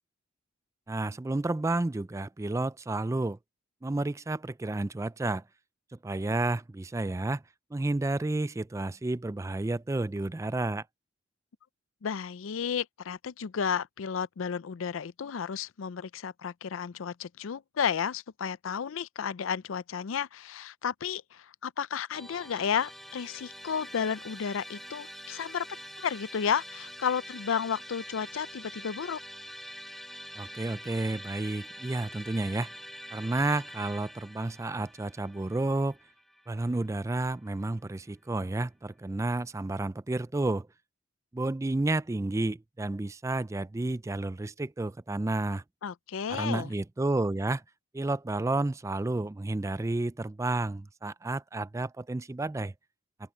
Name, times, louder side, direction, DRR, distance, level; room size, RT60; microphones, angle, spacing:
voice 1, 0.9-3.4 3.8-5.4 5.9-7.4 7.7-10.8 30.4-32.7 33.1-36.0 36.5-40.7 41.3-45.6 46.3-47.6 47.9-52.7, right 2 dB, 15° right, 0.3 m, -31 dB
voice 2, 12.0-25.7 26.0-29.2 45.8-46.7, left 7 dB, 80° left, 0.5 m, -32 dB
Musical instrument, 22.1-37.3, equal, ahead, 1.0 m, -45 dB
open air
head